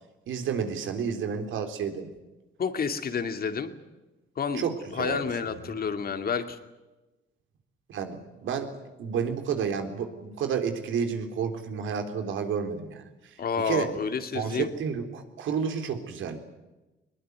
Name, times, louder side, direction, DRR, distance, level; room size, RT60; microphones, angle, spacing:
voice 1, 0.3-2.1 4.5-5.2 5.5-5.7 7.9-8.7 9.0-13.0 13.6-13.9 14.3-16.4, right 7 dB, 80° right, 6 dB, 3.7 m, -30 dB
voice 2, 2.6-3.7 4.4-4.7 4.9-6.6 13.4-14.7, left 6 dB, 50° left, 8 dB, 2.5 m, -29 dB
21.5 x 20.5 x 9.6 m, 1.1 s
cardioid pair, 90°, 20 cm